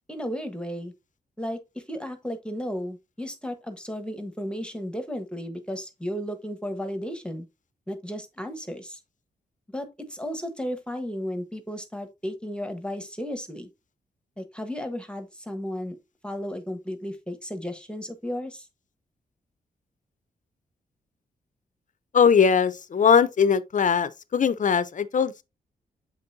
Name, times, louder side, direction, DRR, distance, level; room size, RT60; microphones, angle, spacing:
voice 1, 0.1-0.9 1.4-7.5 7.9-9.0 9.7-13.7 14.4-16.0 16.2-18.7, equal, 5° left, 1.2 m, -34 dB
voice 2, 22.1-25.4, left 6 dB, 50° left, 0.7 m, -20 dB
7.6 x 5.4 x 2.7 m
cardioid pair, 65°, 17 cm